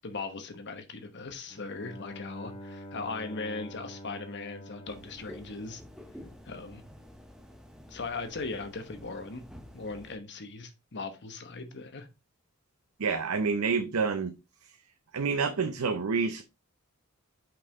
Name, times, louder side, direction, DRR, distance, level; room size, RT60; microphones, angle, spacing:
voice 1, 0.0-5.8 6.4-6.8 7.9-9.4 9.7-12.1, left 3 dB, 55° left, 1.0 m, -39 dB
Bowed string instrument, 1.5-6.3, equal, 25° left, 0.6 m, -46 dB
sound 1, 4.9-10.2, equal, 5° right, 0.9 m, -49 dB
voice 2, 13.0-14.3 15.1-16.4, right 5 dB, 85° right, 0.6 m, -28 dB
5.9 x 5.4 x 3.8 m
head